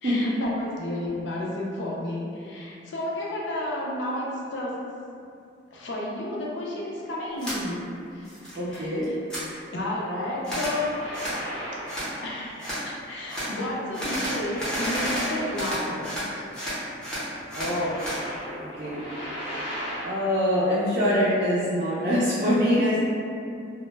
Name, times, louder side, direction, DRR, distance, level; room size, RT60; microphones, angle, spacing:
voice 1, 0.0-4.8 5.7-7.8 8.1-8.3 8.5-9.1 9.7-11.1 12.2-16.5, left 1 dB, 65° left, -4 dB, 0.5 m, -32 dB
sound 1, 7.4-7.6 8.0-8.8 9.0-9.4 10.4-10.8 11.1-11.4 11.9-12.1 12.6-12.8 13.3-13.5 13.9-16.3 16.5-18.2, equal, 5° left, 0.6 m, -31 dB
voice 2, 8.6-9.1 17.5-18.0 18.5-19.0 20.0-23.0, equal, 45° right, -10 dB, 0.4 m, -24 dB
sound 2, 10.8-12.3 12.6-12.8 14.1-16.0 16.3-16.4 17.3-20.4, equal, 85° left, 1.1 m, -37 dB
2.1 x 2.0 x 3.1 m, 2.4 s
head